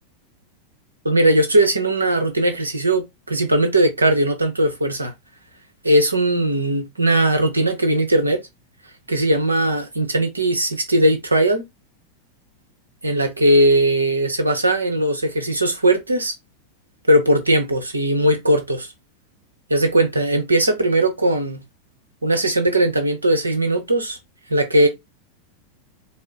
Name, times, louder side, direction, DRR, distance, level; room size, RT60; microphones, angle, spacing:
voice 1, 1.0-5.1 5.8-8.4 9.1-11.6 13.0-16.3 17.1-18.9 19.7-21.6 22.2-24.2 24.5-24.9, right 1 dB, 80° right, 0.9 m, -19 dB
4.2 x 2.1 x 3.7 m
figure-of-eight pair, 90°, 0 cm